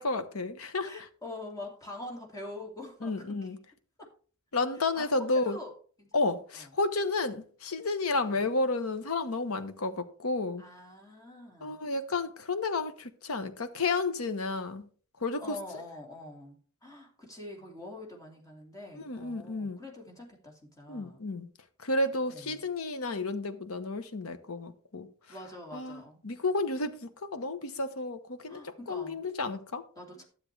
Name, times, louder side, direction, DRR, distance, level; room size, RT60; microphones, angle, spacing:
voice 1, 0.0-1.1 3.0-3.6 4.5-5.6 6.1-10.6 11.6-14.9 15.2-15.6 19.0-19.8 20.9-21.5 21.8-25.1 25.7-29.8, left 3 dB, 85° left, 1.0 m, -31 dB
voice 2, 0.8-3.2 4.0-4.1 4.9-5.7 6.0-6.1 6.5-6.7 8.2-8.4 10.6-11.8 15.4-21.2 22.2-22.6 25.3-26.2 28.5-29.2 30.0-30.2, left 2 dB, 15° left, 2.4 m, -45 dB
12.0 x 7.6 x 3.3 m
head